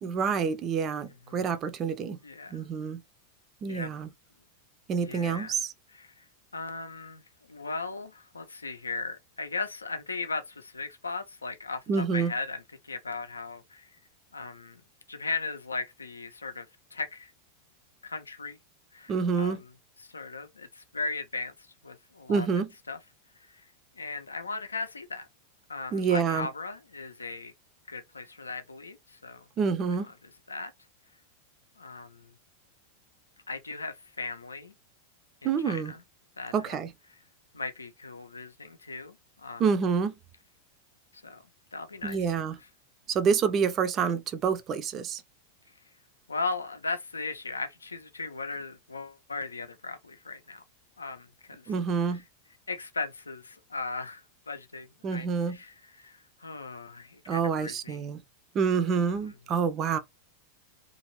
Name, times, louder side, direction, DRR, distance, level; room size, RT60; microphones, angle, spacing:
voice 1, 0.0-2.2 2.5-3.0 3.6-4.1 4.9-5.7 11.9-12.3 19.1-19.6 22.3-22.7 25.9-26.5 29.6-30.1 35.4-35.9 36.5-36.9 39.6-40.1 42.0-42.6 43.1-45.2 51.7-52.2 55.0-55.6 57.3-58.2 58.5-60.0, right 6 dB, 30° right, 0.4 m, -27 dB
voice 2, 2.2-2.6 3.7-3.9 5.0-5.5 5.9-6.2 6.5-7.2 7.5-13.9 14.3-14.8 15.1-17.3 18.0-18.6 18.9-19.7 20.0-22.5 22.9-23.0 23.5-23.6 24.0-25.3 25.7-27.5 27.9-29.4 30.1-30.2 30.5-30.7 31.8-32.3 33.5-34.7 35.4-36.0 36.4-36.8 37.5-39.6 41.1-41.4 41.7-42.2 46.3-50.6 51.0-51.7 52.1-52.2 52.7-58.0, left 3 dB, 75° left, 0.5 m, -37 dB
2.8 x 2.5 x 2.9 m
figure-of-eight pair, 90°, 0 cm